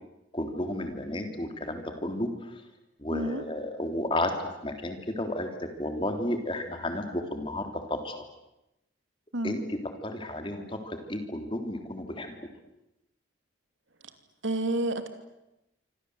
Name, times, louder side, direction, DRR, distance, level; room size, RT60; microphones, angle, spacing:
voice 1, 0.3-2.3 3.0-4.3 4.6-5.5 5.8-8.2 9.4-9.6 10.0-12.3, left 1 dB, 25° left, 5 dB, 3.4 m, -32 dB
voice 2, 3.1-3.4 9.3-9.6 14.4-15.1, right 1 dB, 85° right, 8 dB, 2.9 m, -29 dB
27.0 x 25.5 x 8.1 m, 0.92 s
head